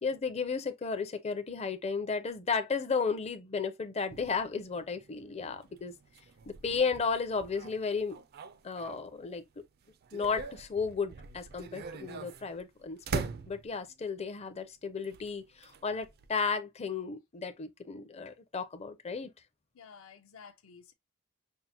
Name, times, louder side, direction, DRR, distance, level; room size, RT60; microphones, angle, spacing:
voice 1, 0.0-5.9 6.5-8.2 8.6-9.4 10.1-19.3, left 5 dB, 30° left, 0.5 m, -34 dB
sound 1, 4.1-9.4 9.8-14.0 15.0-16.5, right 5 dB, 45° right, 0.4 m, -43 dB
voice 2, 19.7-20.9, left 6 dB, 75° left, 0.7 m, -52 dB
5.5 x 2.1 x 2.8 m
head